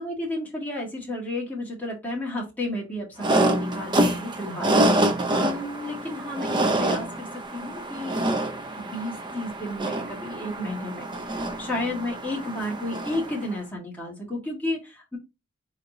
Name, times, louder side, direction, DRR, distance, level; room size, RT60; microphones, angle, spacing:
voice 1, 0.0-4.8 5.3-7.3 7.5-8.2 8.8-15.2, left 1 dB, 10° left, -4 dB, 1.7 m, -32 dB
sound 1, 3.2-13.5, right 1 dB, 20° right, 0.4 m, -26 dB
4.2 x 3.8 x 2.7 m, 0.25 s
head